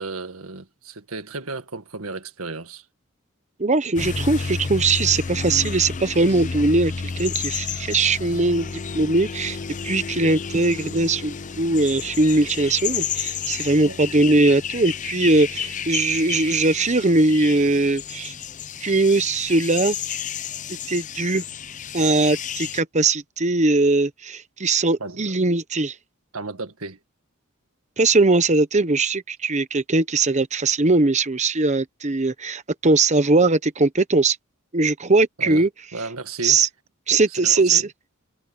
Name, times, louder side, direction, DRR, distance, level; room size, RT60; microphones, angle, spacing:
voice 1, 0.0-2.9 13.8-14.0 25.0-25.2 26.3-27.0 35.4-35.7 35.9-36.7 37.4-37.9, right 3 dB, 90° right, 1.9 m, -33 dB
voice 2, 3.6-9.6 9.8-18.3 18.8-20.0 20.9-21.4 21.9-25.9 28.0-34.4 34.7-35.7 36.4-36.7 37.1-37.9, right 3 dB, 35° right, 1.0 m, -20 dB
sound 1, 4.0-22.8, left 6 dB, 35° left, 0.6 m, -31 dB
head